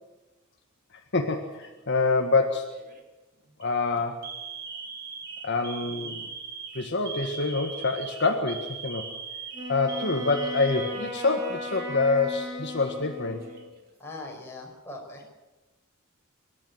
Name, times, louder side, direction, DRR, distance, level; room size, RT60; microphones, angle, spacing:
voice 1, 1.1-2.7 3.6-4.2 5.4-6.2 6.7-9.1 9.7-13.4, left 3 dB, 55° left, 4 dB, 1.6 m, -26 dB
Alarm, 1.3-1.8 2.7-3.0 3.5-3.7 4.2-11.8 12.1-12.2 13.1-13.8, right 5 dB, 45° right, 3.0 m, -40 dB
voice 2, 5.9-6.2 14.0-15.2, left 2 dB, 10° left, -1 dB, 5.3 m, -41 dB
Wind instrument woodwind instrument, 9.5-13.7, left 1 dB, 15° right, 5.0 m, -37 dB
24.5 x 11.5 x 9.5 m, 1.1 s
head